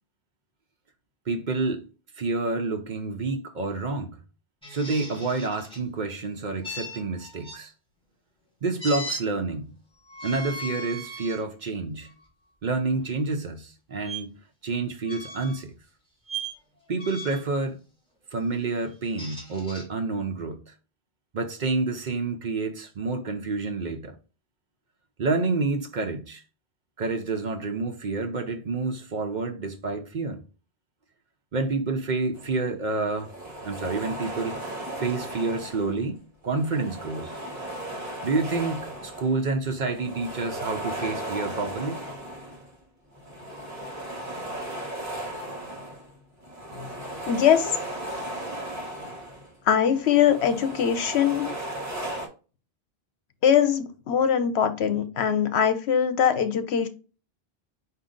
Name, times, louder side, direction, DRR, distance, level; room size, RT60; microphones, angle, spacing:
voice 1, 1.3-1.9 2.2-4.2 4.7-7.7 8.6-9.7 10.2-12.1 12.6-14.3 14.6-15.7 16.9-17.8 18.3-20.7 21.3-24.2 25.2-26.4 27.0-30.4 31.5-33.3 33.6-34.6 35.0-37.4 38.2-42.0, right 3 dB, 50° right, 0.7 m, -28 dB
sound 1, 4.6-5.8 6.6-7.6 8.8-9.2 10.1-11.4 12.0-12.2 14.0-14.2 15.0-15.6 16.3-16.6 17.0-17.5 18.9-19.8, right 1 dB, 5° left, 2.0 m, -37 dB
sound 2, 32.4-32.6 33.0-36.1 36.4-39.5 39.8-42.7 43.1-49.5 49.9-52.3, right 1 dB, 15° right, 1.1 m, -36 dB
voice 2, 47.3-47.7 49.7-51.5 53.4-56.9, left 8 dB, 80° left, 1.0 m, -22 dB
5.0 x 2.7 x 3.7 m
omnidirectional pair, 1.1 m